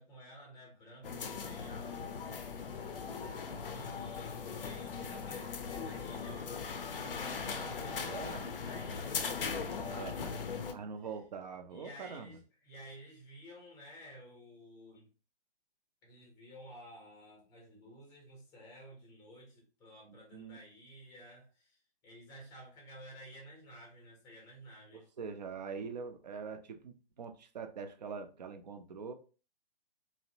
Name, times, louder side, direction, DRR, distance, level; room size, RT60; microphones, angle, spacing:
voice 1, 0.0-2.3 3.6-10.7 11.0-11.1 11.7-15.1 16.0-25.1, equal, 10° left, 0.6 m, -53 dB
sound 1, 1.0-10.7, left 5 dB, 60° left, 0.5 m, -39 dB
voice 2, 8.0-8.4 9.9-10.1 10.7-12.3 20.1-20.6 25.2-29.1, right 5 dB, 45° right, 0.4 m, -43 dB
2.6 x 2.0 x 2.6 m
figure-of-eight pair, 135°, 31 cm